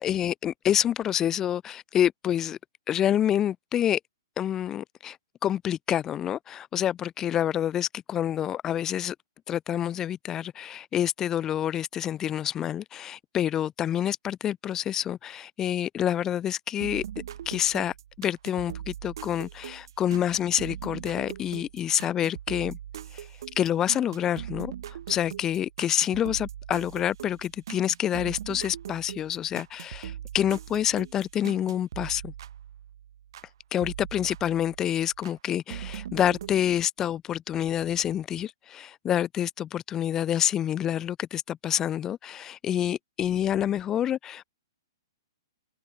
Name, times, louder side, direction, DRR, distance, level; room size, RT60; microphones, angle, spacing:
voice 1, 0.0-2.6 2.9-4.0 4.4-5.2 5.4-9.2 9.5-17.0 17.5-22.8 23.1-23.3 23.6-24.7 25.1-32.3 33.7-44.4, left 10 dB, 20° left, 0.6 m, -27 dB
sound 1, 16.8-33.5 33.8-35.4 35.7-36.5, right 10 dB, 65° right, 6.0 m, -41 dB
hypercardioid pair, 135°, 2 cm